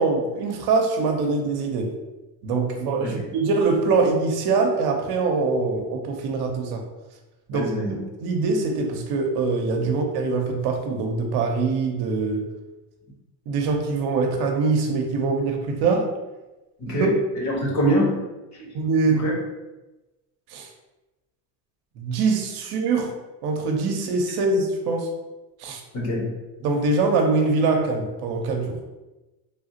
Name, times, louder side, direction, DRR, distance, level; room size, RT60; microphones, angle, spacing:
voice 1, 0.0-1.9 2.4-6.8 7.5-7.7 8.2-12.5 13.5-16.1 16.9-17.1 18.6-19.3 20.5-20.7 22.0-23.1 23.4-25.1 25.6-25.8 26.6-28.8, right 3 dB, 60° right, 3 dB, 0.7 m, -23 dB
voice 2, 7.5-8.0 9.8-9.9 16.8-18.2 19.2-19.3 25.9-26.3, equal, 40° left, -1 dB, 1.1 m, -24 dB
3.4 x 2.4 x 2.7 m, 1.1 s
supercardioid pair, 95°, 43 cm